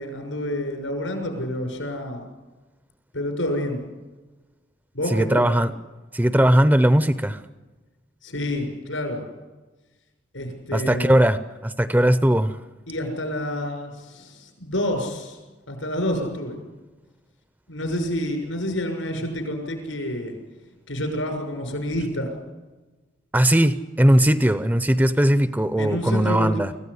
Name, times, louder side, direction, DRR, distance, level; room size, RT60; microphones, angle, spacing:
voice 1, 0.0-2.3 3.1-3.8 4.9-5.5 8.2-9.2 10.3-11.2 12.9-15.4 15.7-16.6 17.7-20.3 20.9-22.3 25.8-26.6, left 1 dB, 85° left, 4 dB, 6.7 m, -28 dB
voice 2, 5.1-5.7 6.1-7.4 10.7-12.5 23.3-26.7, right 1 dB, 10° right, 12 dB, 0.7 m, -19 dB
24.5 x 16.0 x 10.0 m, 1.2 s
head